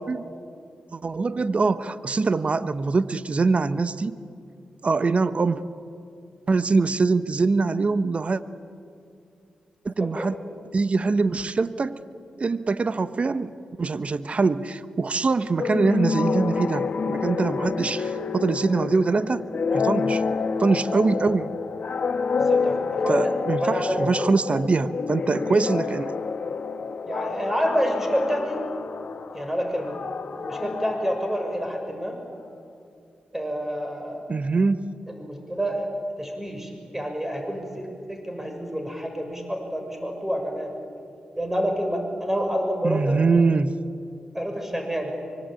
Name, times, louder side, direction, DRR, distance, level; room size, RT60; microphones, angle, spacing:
voice 1, 0.9-4.2 4.8-5.6 6.5-8.4 9.8-10.3 10.7-12.0 12.4-13.5 13.8-19.5 19.7-20.2 20.6-21.5 23.1-26.1 34.3-34.8 42.8-43.8, right 4 dB, 45° right, 13 dB, 1.1 m, -23 dB
sound 1, 15.6-32.0, left 5 dB, 60° left, 1.5 m, -28 dB
voice 2, 22.3-23.3 23.6-24.0 27.1-28.7 29.3-30.0 30.4-32.2 33.3-34.3 35.1-35.9 36.2-40.7 41.4-43.2 44.3-45.1, equal, 10° right, 3 dB, 6.3 m, -28 dB
24.5 x 24.5 x 9.1 m, 2.5 s
supercardioid pair, 40°, 3 cm